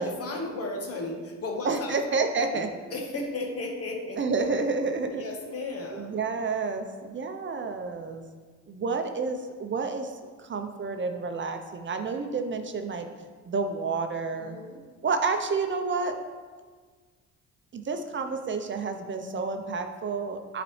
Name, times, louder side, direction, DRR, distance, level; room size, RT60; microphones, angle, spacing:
voice 1, 0.0-2.0 2.5-2.7 2.9-4.2 5.0-6.2 14.3-14.8, left 2 dB, 50° left, 1 dB, 1.3 m, -34 dB
voice 2, 1.7-2.7 4.2-5.2 5.9-8.2 8.7-10.1 10.4-13.1 13.4-14.6 15.0-16.1 17.7-20.6, right 4 dB, 40° right, 6 dB, 0.6 m, -29 dB
9.7 x 4.1 x 3.2 m, 1.5 s
cardioid pair, 90°, 30 cm